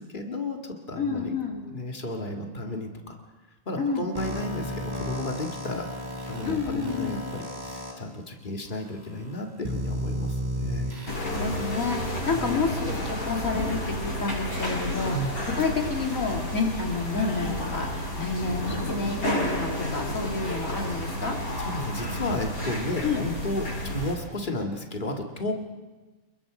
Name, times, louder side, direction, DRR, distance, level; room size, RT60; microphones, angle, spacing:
voice 1, 0.0-1.3 1.7-3.2 3.7-5.9 6.3-10.9 12.3-12.9 15.0-15.3 21.6-25.5, left 1 dB, 35° left, 3 dB, 2.2 m, -33 dB
voice 2, 1.0-1.6 3.8-4.1 6.4-7.2 10.9-11.0 11.2-15.3 15.6-21.4 23.0-23.2, left 4 dB, 70° left, 0 dB, 2.9 m, -29 dB
sound 1, 4.2-7.9 8.7-8.8 9.6-12.2, equal, 30° right, 3.7 m, -33 dB
sound 2, 11.1-24.1, left 1 dB, 85° left, 7.8 m, -31 dB
29.5 x 21.5 x 5.1 m, 1.3 s
omnidirectional pair, 1.5 m